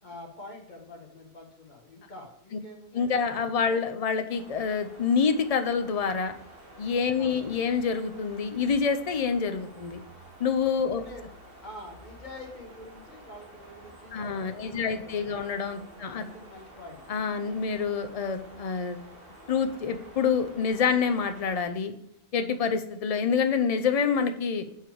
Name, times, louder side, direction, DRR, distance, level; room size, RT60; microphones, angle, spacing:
voice 1, 0.0-3.3 3.6-3.9 7.2-7.5 10.9-15.5 16.0-17.2, left 1 dB, 35° left, 1 dB, 1.5 m, -46 dB
voice 2, 2.9-6.3 6.8-10.0 10.4-11.0 14.1-16.2 17.1-19.0 19.5-21.9 22.3-24.7, left 6 dB, 75° left, 8 dB, 0.3 m, -27 dB
sound 1, 4.3-21.6, right 1 dB, 45° right, 1.8 m, -50 dB
6.6 x 4.5 x 4.7 m, 0.78 s
omnidirectional pair, 1.4 m